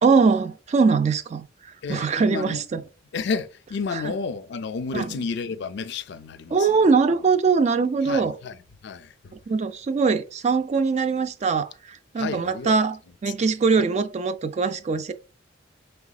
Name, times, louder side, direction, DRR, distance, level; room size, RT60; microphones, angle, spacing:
voice 1, 0.0-1.5 1.9-2.8 3.9-4.0 4.9-5.1 6.5-8.4 9.5-15.1, right 4 dB, 35° right, 0.3 m, -22 dB
voice 2, 1.8-2.6 3.1-6.7 8.0-8.6 8.8-9.3 12.2-12.7 13.3-13.4 13.8-13.9, left 5 dB, 60° left, 0.4 m, -31 dB
5.0 x 3.4 x 2.3 m
head